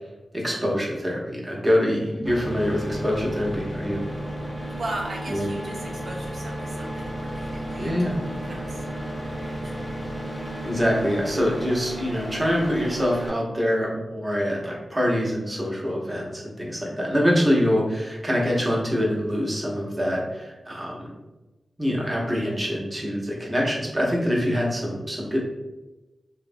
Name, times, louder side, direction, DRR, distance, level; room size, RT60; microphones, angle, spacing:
voice 1, 0.3-4.0 5.3-5.5 7.8-8.1 10.6-21.1 21.8-25.4, equal, 15° right, -3 dB, 0.8 m, -25 dB
sound 1, 2.2-13.3, right 1 dB, 20° left, 0.7 m, -33 dB
voice 2, 4.8-8.8 9.3-10.0, right 2 dB, 65° right, 0 dB, 0.3 m, -38 dB
2.8 x 2.1 x 2.6 m, 1.1 s
wide cardioid pair, 80°, 0 cm